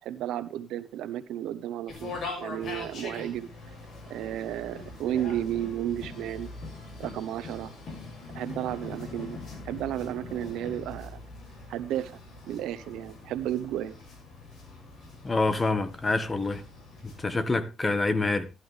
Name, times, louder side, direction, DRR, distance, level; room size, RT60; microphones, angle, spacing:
voice 1, 0.0-3.5 4.1-6.5 7.0-7.7 8.3-9.4 9.6-11.2 11.7-12.2 12.5-13.9, right 11 dB, 90° right, 1.0 m, -33 dB
sound 1, 1.9-17.3, left 3 dB, 60° left, 6.3 m, -42 dB
voice 2, 15.2-16.6 17.0-18.5, left 3 dB, 25° left, 1.6 m, -26 dB
13.5 x 11.5 x 3.4 m
cardioid pair, 90°, 0 cm